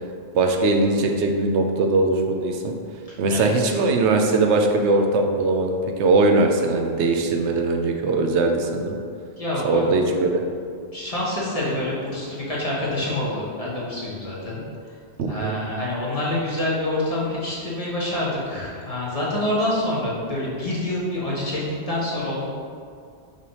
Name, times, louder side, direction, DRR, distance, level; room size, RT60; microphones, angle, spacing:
voice 1, 0.3-2.7 3.2-8.9 9.6-10.4 15.2-15.6, right 3 dB, 85° right, 3 dB, 0.9 m, -20 dB
voice 2, 3.3-3.7 9.4-9.8 10.9-14.6 15.3-22.4, left 1 dB, 35° left, -6 dB, 1.3 m, -26 dB
5.4 x 3.3 x 5.3 m, 2.3 s
omnidirectional pair, 1.1 m